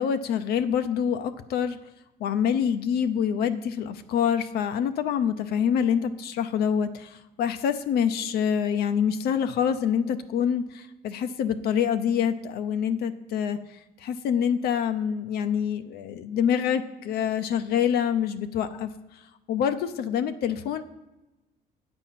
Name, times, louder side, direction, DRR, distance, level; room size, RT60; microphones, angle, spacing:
voice 1, 0.0-1.8 2.2-7.1 7.4-13.6 14.0-18.9 19.5-20.8, left 8 dB, 70° left, 9 dB, 0.6 m, -26 dB
8.9 x 4.3 x 7.4 m, 1.0 s
cardioid pair, 110°, 17 cm